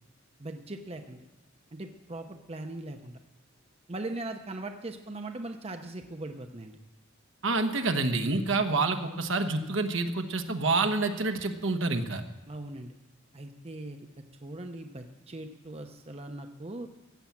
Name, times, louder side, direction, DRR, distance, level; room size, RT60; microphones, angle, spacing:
voice 1, 0.4-1.3 1.7-3.2 3.9-6.8 12.5-12.9 13.3-14.0 14.4-16.9, right 2 dB, 30° right, 5 dB, 0.8 m, -40 dB
voice 2, 7.4-12.2, right 3 dB, 70° right, 6 dB, 1.2 m, -28 dB
15.0 x 8.6 x 7.3 m, 1.1 s
head